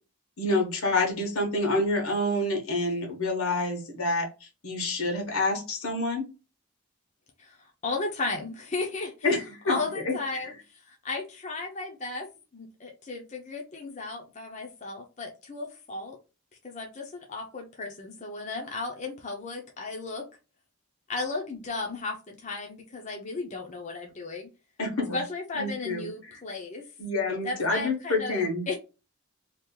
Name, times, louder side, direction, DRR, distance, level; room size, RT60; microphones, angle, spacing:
voice 1, 0.4-4.3 4.6-6.3 9.2-9.8 10.1-10.5 24.8-25.2 25.5-26.1 27.0-28.7, left 2 dB, 85° left, 2 dB, 1.2 m, -27 dB
voice 2, 7.8-9.1 9.6-10.5 10.9-12.3 12.5-16.2 16.6-20.2 21.1-24.5 25.1-26.8 27.4-28.8, left 3 dB, 35° left, 1 dB, 0.6 m, -35 dB
2.9 x 2.5 x 3.6 m, 0.30 s
head